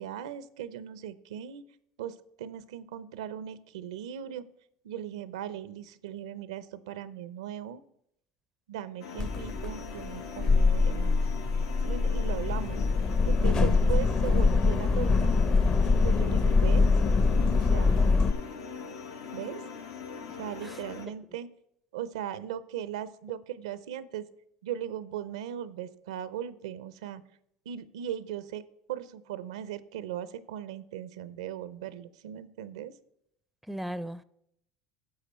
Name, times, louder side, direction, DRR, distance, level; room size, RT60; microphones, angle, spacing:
voice 1, 0.0-1.6 2.0-4.4 4.8-7.8 8.7-11.2 11.8-12.8 13.2-15.4 15.8-16.9 17.5-18.0 19.3-19.6 20.3-21.5 21.9-24.2 24.6-27.2 27.7-28.6 28.9-32.9, right 10 dB, 90° right, 16 dB, 0.5 m, -38 dB
sound 1, 9.0-21.1, left 5 dB, 85° left, 1.1 m, -42 dB
sound 2, 9.2-18.3, left 4 dB, 30° left, 0.7 m, -24 dB
voice 2, 33.7-34.2, equal, ahead, 16 dB, 0.4 m, -36 dB
10.5 x 6.7 x 4.3 m, 0.74 s
supercardioid pair, 100°, 3 cm